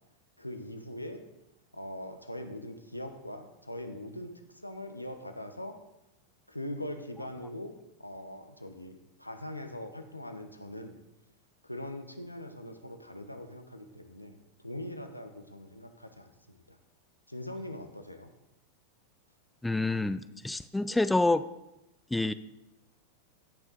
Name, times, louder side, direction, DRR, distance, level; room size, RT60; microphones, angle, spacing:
voice 1, 0.4-1.2 1.7-5.7 6.5-7.7 8.0-10.9 11.6-16.8 17.3-18.3, left 1 dB, 85° left, 6 dB, 0.9 m, -42 dB
voice 2, 19.6-21.4 22.1-22.3, left 2 dB, 5° left, 14 dB, 0.3 m, -27 dB
16.5 x 6.0 x 4.0 m, 0.90 s
figure-of-eight pair, 90°, 0 cm